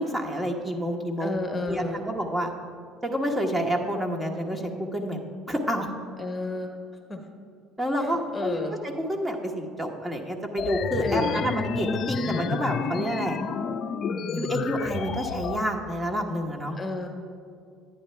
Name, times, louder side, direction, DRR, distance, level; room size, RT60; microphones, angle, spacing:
voice 1, 0.0-2.5 3.0-5.2 5.5-5.9 7.8-13.4 14.3-16.7, equal, 15° right, 1 dB, 1.3 m, -29 dB
voice 2, 1.2-2.0 6.2-6.7 7.1-7.2 8.0-8.8 11.0-11.4 16.8-17.1, left 2 dB, 25° left, 4 dB, 1.1 m, -32 dB
sound 1, 10.6-15.6, left 6 dB, 50° left, 0.5 m, -30 dB
10.5 x 9.6 x 3.4 m, 2.3 s
hypercardioid pair, 70°, 0 cm